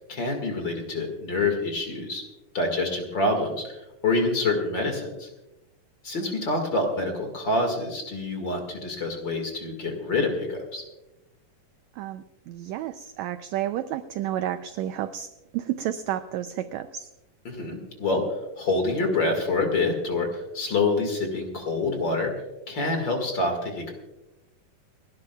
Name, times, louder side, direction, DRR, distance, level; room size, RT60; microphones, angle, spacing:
voice 1, 0.1-2.2 2.5-5.3 6.0-10.8 17.4-18.2 18.6-22.3 22.7-23.9, left 2 dB, 40° left, 4 dB, 2.2 m, -26 dB
voice 2, 12.0-15.3 15.5-17.1, right 12 dB, 85° right, 11 dB, 1.6 m, -31 dB
30.0 x 12.0 x 2.3 m, 0.97 s
omnidirectional pair, 3.7 m